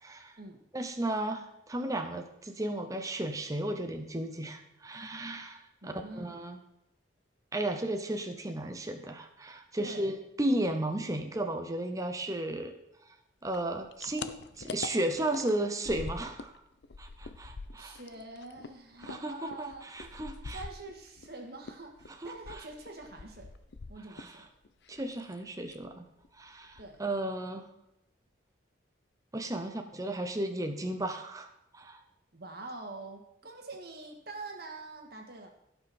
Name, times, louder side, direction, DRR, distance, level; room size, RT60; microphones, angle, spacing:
voice 1, 0.0-0.3 0.7-6.6 7.5-12.7 13.4-16.5 17.0-18.0 19.0-20.6 22.2-22.3 24.2-24.3 24.9-26.1 26.4-27.7 29.3-32.0, right 1 dB, 15° right, 6 dB, 0.7 m, -34 dB
voice 2, 5.8-6.3 9.8-10.1 17.7-19.9 20.5-23.5 23.9-24.5 26.8-27.0 32.3-35.5, right 2 dB, 55° right, 2 dB, 1.8 m, -45 dB
sound 1, 13.5-16.6 16.8-21.3 21.6-24.4 24.7-25.4 25.7-25.9 26.2-26.3 26.6-27.2, left 4 dB, 60° left, 0.6 m, -44 dB
16.0 x 5.6 x 4.3 m, 0.82 s
head